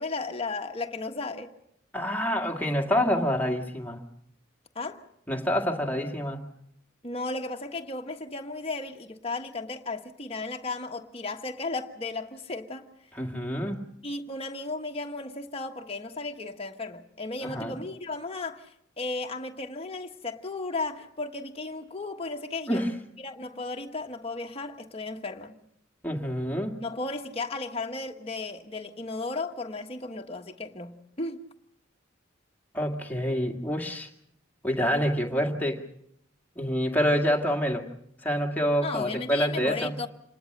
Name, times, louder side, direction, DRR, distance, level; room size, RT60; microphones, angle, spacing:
voice 1, 0.0-1.5 4.7-5.1 7.0-12.8 14.0-22.8 23.2-25.5 26.8-31.4 38.8-40.1, left 3 dB, 30° left, 1.4 m, -35 dB
voice 2, 1.9-4.0 5.3-6.4 13.1-13.9 17.4-17.8 22.7-22.9 26.0-26.8 32.7-34.1 34.6-35.8 36.6-37.9 38.2-40.0, equal, 10° left, 2.0 m, -27 dB
27.0 x 20.0 x 6.6 m
head